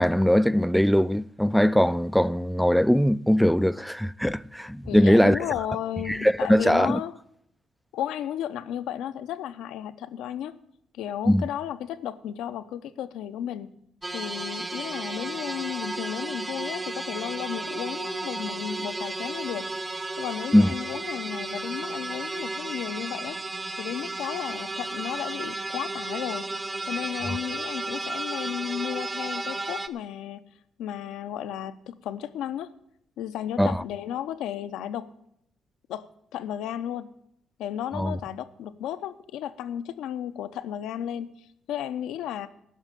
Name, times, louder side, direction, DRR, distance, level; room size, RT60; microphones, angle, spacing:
voice 1, 0.0-5.4 6.1-7.0 11.3-11.5 20.5-20.7 27.3-27.4 33.6-33.8 37.9-38.2, equal, ahead, 0.4 m, -21 dB
voice 2, 4.9-7.1 7.9-10.6 10.9-13.7 14.1-19.7 20.2-23.4 23.8-26.5 26.9-30.5 30.8-32.7 33.2-35.1 35.9-37.1 37.6-42.5, left 10 dB, 90° left, 0.7 m, -34 dB
sound 1, 14.0-29.9, right 2 dB, 25° right, 0.9 m, -33 dB
11.0 x 6.4 x 9.1 m
cardioid pair, 90°, 0 cm